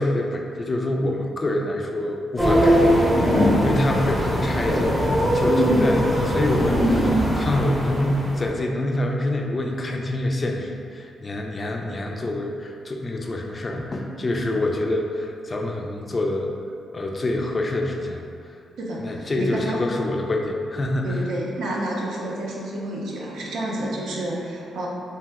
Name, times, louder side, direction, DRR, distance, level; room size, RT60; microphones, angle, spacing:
voice 1, 0.0-5.0 5.3-16.5 16.9-18.3 19.0-21.2, left 1 dB, 35° left, 1 dB, 0.4 m, -26 dB
sound 1, 2.4-8.5, equal, 10° right, 0.6 m, -20 dB
voice 2, 18.8-19.8 21.0-24.9, right 1 dB, 80° right, -4 dB, 0.5 m, -30 dB
2.6 x 2.1 x 3.4 m, 2.3 s
supercardioid pair, 60°, 0 cm